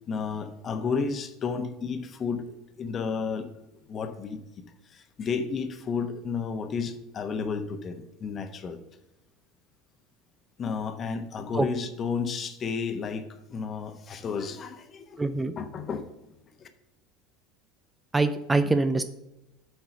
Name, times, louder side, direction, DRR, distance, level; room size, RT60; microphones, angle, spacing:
voice 1, 0.1-3.5 3.9-4.4 4.8-8.8 10.6-15.2 15.6-16.1 16.6-16.7, left 5 dB, 35° left, 8 dB, 1.0 m, -32 dB
voice 2, 15.2-15.5 18.1-19.0, right 3 dB, 15° right, 11 dB, 0.5 m, -24 dB
7.9 x 4.6 x 5.8 m, 0.93 s
figure-of-eight pair, 70°, 0 cm